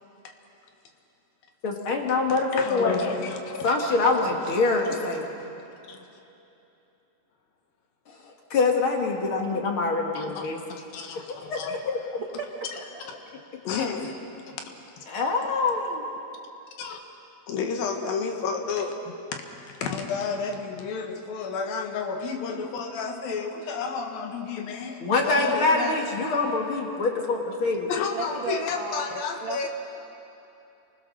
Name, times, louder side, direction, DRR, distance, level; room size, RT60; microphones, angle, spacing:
voice 1, 1.6-3.1 3.6-5.2 8.2-10.6 11.3-12.0 13.8-13.9 15.1-16.0 25.0-27.9, left 3 dB, 45° left, 2 dB, 2.0 m, -25 dB
voice 2, 2.3-4.0 4.9-5.0 5.4-5.5 5.9-6.0 10.1-11.8 13.0-14.2 14.5-15.0 16.8-17.0 17.5-26.3 27.9-29.7, left 5 dB, 75° left, 4 dB, 3.2 m, -32 dB
voice 3, 12.4-13.0 28.1-29.7, right 5 dB, 60° right, 0 dB, 1.3 m, -35 dB
27.0 x 20.5 x 6.5 m, 2.9 s
omnidirectional pair, 4.3 m